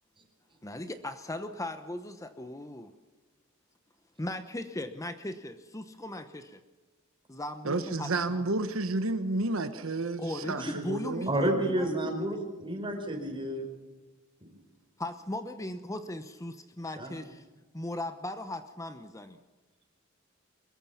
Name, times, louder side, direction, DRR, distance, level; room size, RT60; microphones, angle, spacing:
voice 1, 0.6-2.9 4.2-6.6 7.3-8.4 10.2-12.1 15.0-17.4 17.7-19.4, left 1 dB, 15° left, 0.9 m, -38 dB
voice 2, 7.6-11.3, right 2 dB, 70° right, 1.1 m, -31 dB
voice 3, 11.3-13.6 14.5-14.6 17.0-17.1, right 1 dB, 25° right, 5.0 m, -30 dB
23.5 x 21.5 x 5.8 m
head